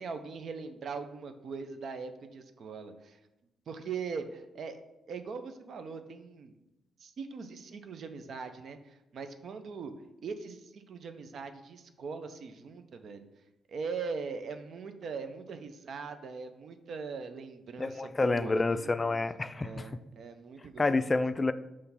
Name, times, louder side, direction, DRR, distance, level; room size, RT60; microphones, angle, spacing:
voice 1, 0.0-3.2 3.7-4.8 5.1-6.5 7.0-9.9 10.2-13.3 13.7-19.1 19.6-21.1, right 5 dB, 65° right, 9 dB, 0.6 m, -41 dB
voice 2, 17.8-19.9 20.8-21.5, left 3 dB, 30° left, 13 dB, 0.3 m, -28 dB
5.7 x 3.3 x 5.6 m, 0.95 s
hypercardioid pair, 50°, 0 cm